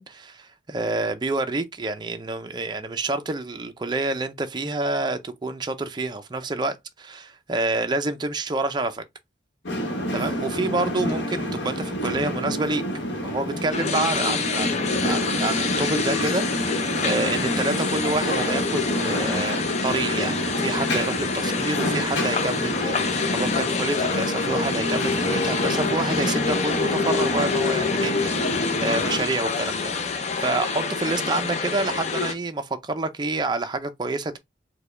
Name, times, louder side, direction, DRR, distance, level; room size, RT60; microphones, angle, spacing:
voice 1, 0.0-9.0 10.1-12.8 13.2-34.4, right 2 dB, 25° right, 0.5 m, -28 dB
sound 1, 9.6-29.2, equal, 85° left, 1.1 m, -28 dB
sound 2, 13.7-32.3, left 5 dB, 40° left, 0.5 m, -27 dB
4.7 x 2.2 x 3.2 m
head